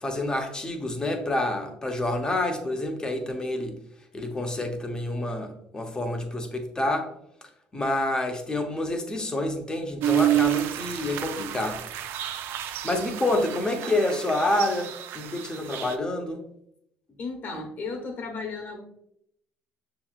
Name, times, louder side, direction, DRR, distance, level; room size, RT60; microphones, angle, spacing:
voice 1, 0.0-3.7 4.1-7.1 7.7-11.8 12.8-16.4, left 1 dB, 20° left, 4 dB, 0.7 m, -28 dB
sound 1, 10.0-15.9, right 13 dB, 65° right, 0.3 m, -29 dB
voice 2, 17.2-18.8, left 4 dB, 50° left, 3 dB, 1.2 m, -34 dB
6.3 x 2.9 x 2.4 m, 0.75 s
supercardioid pair, 80°, 4 cm